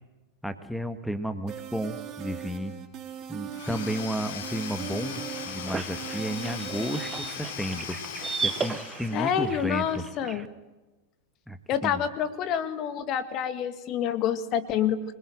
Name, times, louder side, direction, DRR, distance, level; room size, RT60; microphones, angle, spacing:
voice 1, 0.4-2.7 3.3-8.0 8.4-10.0 11.5-11.6 11.8-12.0, equal, ahead, 9 dB, 1.6 m, -32 dB
sound 1, 1.5-7.3, right 8 dB, 35° right, 4.7 m, -39 dB
Domestic sounds home sounds / Tools, 3.5-9.6, left 7 dB, 55° left, 4.3 m, -39 dB
sound 2, 5.0-10.5, right 5 dB, 15° right, 1.0 m, -36 dB
voice 2, 9.1-10.5 11.7-15.1, left 8 dB, 35° left, 11 dB, 1.9 m, -28 dB
26.0 x 21.5 x 7.7 m, 1.1 s
figure-of-eight pair, 90°, 0 cm